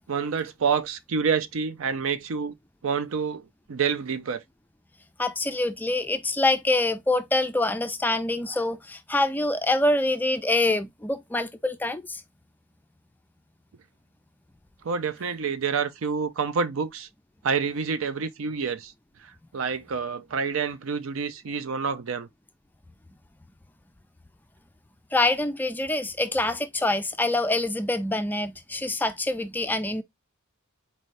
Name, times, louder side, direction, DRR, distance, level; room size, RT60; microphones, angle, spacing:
voice 1, 0.1-2.5 2.8-4.4 14.8-17.1 17.4-18.9 19.2-22.3, right 6 dB, 70° right, 0.5 m, -28 dB
voice 2, 5.2-12.2 25.1-30.0, left 2 dB, 10° left, 0.3 m, -25 dB
4.2 x 2.7 x 3.2 m
head